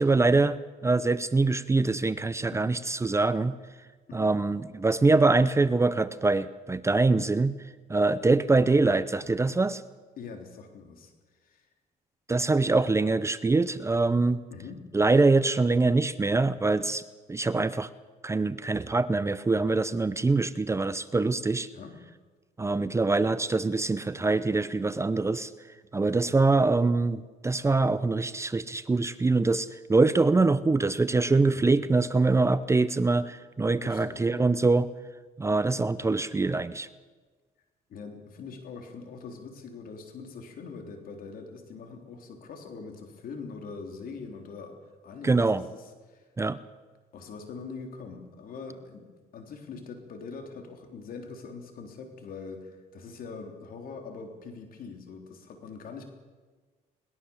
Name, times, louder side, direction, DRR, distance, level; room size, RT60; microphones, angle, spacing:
voice 1, 0.0-3.6 4.1-7.5 7.9-9.8 12.3-14.4 14.9-17.0 17.3-17.9 18.2-21.7 22.6-25.5 25.9-34.9 35.4-36.9 45.2-45.6 46.4-46.6, right 3 dB, 15° right, 15 dB, 0.7 m, -24 dB
voice 2, 10.2-11.1 11.4-11.7 14.5-14.9 21.7-22.0 26.0-26.3 31.5-31.8 33.8-34.2 37.9-44.7 45.0-46.3 47.1-56.0, left 4 dB, 60° left, 4 dB, 3.5 m, -43 dB
22.0 x 20.0 x 7.2 m, 1.4 s
cardioid pair, 110°, 17 cm